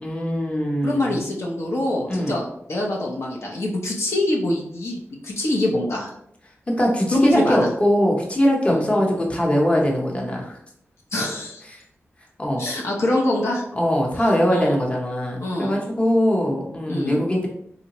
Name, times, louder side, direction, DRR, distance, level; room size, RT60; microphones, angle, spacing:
voice 1, 0.0-1.2 2.1-2.4 6.7-10.6 12.4-12.7 13.8-17.5, equal, 25° left, -1 dB, 0.8 m, -21 dB
voice 2, 0.8-6.1 7.1-7.7 8.7-8.9 11.1-11.6 12.6-13.6 14.2-14.8 15.4-15.7 16.9-17.2, left 1 dB, 65° left, -2 dB, 0.6 m, -24 dB
3.7 x 2.1 x 2.9 m, 0.72 s
wide cardioid pair, 80°, 5 cm